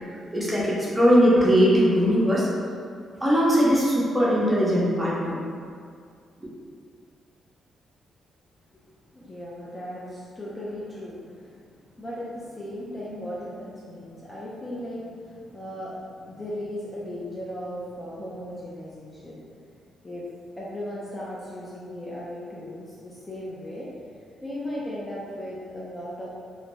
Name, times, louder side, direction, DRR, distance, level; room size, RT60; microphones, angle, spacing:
voice 1, 0.3-2.5 3.2-5.4, equal, 15° right, -7 dB, 0.8 m, -20 dB
voice 2, 9.1-11.7 12.0-19.4 19.9-20.3 20.6-23.9 24.4-26.3, left 1 dB, 20° left, -7 dB, 0.5 m, -37 dB
2.6 x 2.1 x 3.0 m, 2.2 s
cardioid pair, 95°, 0 cm